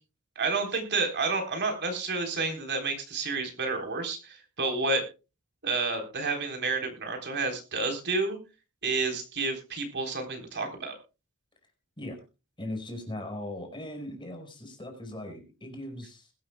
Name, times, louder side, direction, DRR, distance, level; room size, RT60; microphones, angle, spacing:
voice 1, 0.4-5.0 5.6-8.4 8.8-10.9, right 3 dB, 50° right, 4 dB, 3.8 m, -30 dB
voice 2, 12.6-16.3, left 1 dB, 20° left, 4 dB, 5.0 m, -39 dB
21.5 x 12.5 x 2.2 m, 0.30 s
head